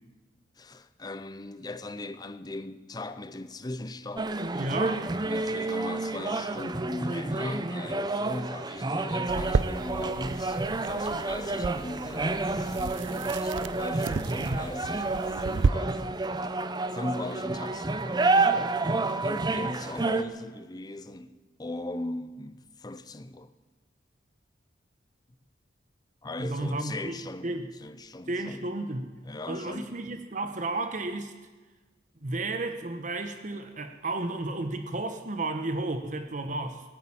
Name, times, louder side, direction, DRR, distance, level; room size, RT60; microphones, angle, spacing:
voice 1, 0.6-4.3 5.2-16.2 16.9-18.7 19.2-23.5 26.2-28.7 29.2-29.9, left 2 dB, 20° left, 0.6 m, -39 dB
sound 1, 4.2-20.2, right 3 dB, 25° right, 0.6 m, -29 dB
voice 2, 4.5-5.1 14.4-14.7 26.4-27.2 27.4-27.7 28.3-29.1 29.5-31.3 32.2-36.8, right 2 dB, 45° right, 1.0 m, -32 dB
sound 2, 9.3-15.7, right 4 dB, 90° right, 0.5 m, -32 dB
17.5 x 8.7 x 8.8 m
head